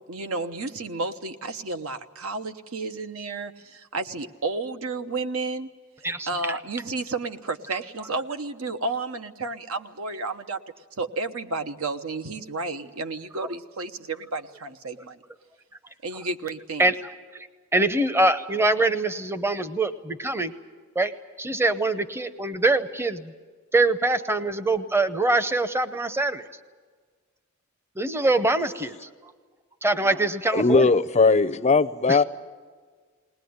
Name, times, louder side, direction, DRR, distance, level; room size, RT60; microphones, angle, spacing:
voice 1, 0.1-5.7 6.3-10.6 11.0-15.2 16.0-16.9, right 3 dB, 75° right, 8 dB, 1.0 m, -32 dB
voice 2, 6.0-6.6 16.8-16.9 17.3-17.5 17.7-20.5 21.0-21.1 21.4-23.3 23.7-26.4 28.0-28.9 29.8-30.9 32.1-32.2, right 2 dB, 10° right, 12 dB, 0.8 m, -24 dB
voice 3, 30.5-32.2, left 4 dB, 30° left, 13 dB, 0.6 m, -19 dB
20.0 x 19.5 x 9.5 m, 1.5 s
head